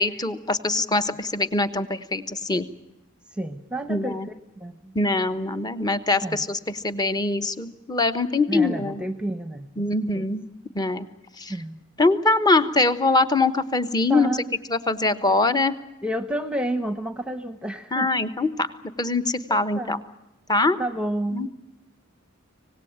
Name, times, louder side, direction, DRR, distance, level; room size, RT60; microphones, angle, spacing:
voice 1, 0.0-2.7 3.9-4.3 4.9-9.0 9.8-10.5 10.7-11.1 11.4-11.5 12.0-14.3 14.7-15.7 17.9-18.7 19.0-20.0 20.5-20.8 21.3-21.5, left 3 dB, 20° left, 11 dB, 1.1 m, -23 dB
voice 2, 3.3-5.0 6.2-6.5 8.5-9.9 10.1-10.3 11.5-11.8 14.1-14.4 16.0-18.2 19.5-20.0 20.8-21.5, right 1 dB, 5° right, 11 dB, 1.0 m, -30 dB
25.5 x 18.5 x 8.8 m, 0.94 s
head